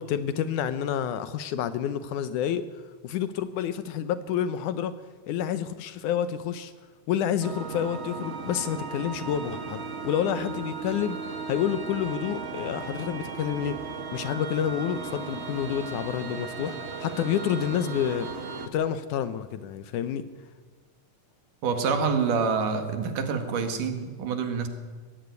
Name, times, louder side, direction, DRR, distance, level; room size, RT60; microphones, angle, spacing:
voice 1, 0.0-2.6 3.0-5.0 5.3-6.7 7.1-11.2 11.5-13.8 14.1-18.3 18.7-20.2, left 9 dB, 75° left, 12 dB, 2.2 m, -29 dB
sound 1, 7.4-18.7, right 4 dB, 55° right, 0.7 m, -36 dB
voice 2, 21.6-24.7, right 5 dB, 80° right, 7 dB, 3.5 m, -27 dB
20.5 x 15.5 x 9.5 m, 1.4 s
omnidirectional pair, 3.6 m